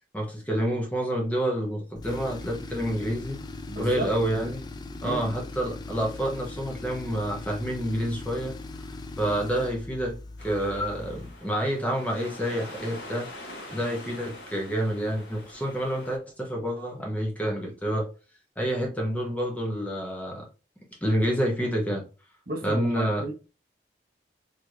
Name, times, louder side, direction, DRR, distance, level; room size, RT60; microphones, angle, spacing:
voice 1, 0.1-3.4 3.8-4.6 5.0-8.5 9.2-10.2 10.4-13.3 13.7-18.1 18.6-20.5 21.0-22.0 22.6-23.2, equal, 10° left, 0.9 m, -28 dB
Tools, 2.0-11.4, left 2 dB, 25° left, 0.3 m, -40 dB
voice 2, 3.7-4.1 5.0-5.3 22.5-23.3, right 1 dB, 55° right, 1.1 m, -33 dB
sound 1, 10.4-16.2, left 1 dB, 75° left, 1.5 m, -44 dB
4.4 x 3.2 x 2.4 m
head